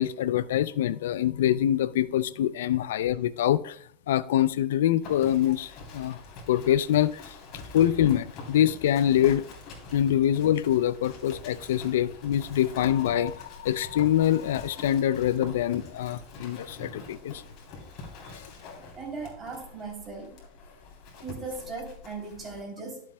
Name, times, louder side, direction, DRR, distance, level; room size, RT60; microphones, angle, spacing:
voice 1, 0.0-6.2 6.5-7.4 7.7-9.4 9.9-17.4 18.3-18.5, left 11 dB, 90° left, 0.3 m, -25 dB
Livestock farm animals working animals, 5.0-22.6, left 3 dB, 50° left, 3.1 m, -45 dB
voice 2, 18.9-20.4 21.2-23.0, right 3 dB, 25° right, 3.2 m, -38 dB
11.5 x 7.4 x 2.2 m
supercardioid pair, 120°, 0 cm